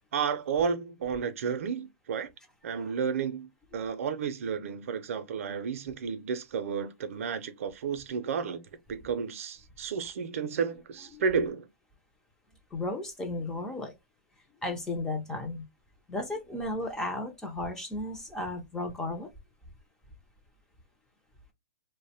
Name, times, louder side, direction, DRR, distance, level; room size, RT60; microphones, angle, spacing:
voice 1, 0.1-2.3 2.6-8.6 8.9-11.7, right 6 dB, 60° right, 0.4 m, -32 dB
voice 2, 12.7-13.9 14.6-15.7 16.1-19.3, left 2 dB, 5° left, 0.3 m, -34 dB
2.5 x 2.0 x 2.7 m
hypercardioid pair, 160°, 8 cm